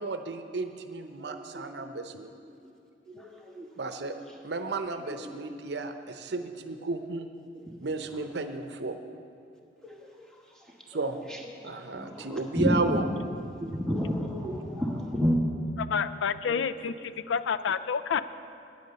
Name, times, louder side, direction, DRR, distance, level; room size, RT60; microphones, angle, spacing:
voice 1, 0.0-2.3 3.7-4.2 4.4-7.3 7.8-9.0 10.9-11.3 11.6-13.1 16.8-16.9, right 3 dB, 65° right, 8 dB, 0.7 m, -33 dB
voice 2, 1.2-1.6 3.1-3.7 5.1-5.3 9.8-10.3 10.5-10.7 10.9-11.0 11.3-13.0 13.6-15.4, equal, 5° left, -1 dB, 1.2 m, -31 dB
voice 3, 15.8-18.2, left 6 dB, 90° left, 14 dB, 0.4 m, -29 dB
9.5 x 8.2 x 6.9 m, 2.6 s
head